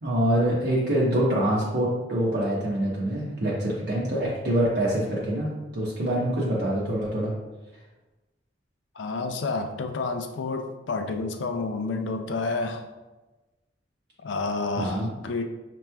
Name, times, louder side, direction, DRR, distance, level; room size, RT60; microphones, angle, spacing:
voice 1, 0.0-7.3 14.8-15.1, right 1 dB, 65° right, -6 dB, 0.8 m, -25 dB
voice 2, 8.9-12.9 14.2-15.4, left 3 dB, 90° left, 6 dB, 0.4 m, -29 dB
5.9 x 3.0 x 2.2 m, 1.1 s
head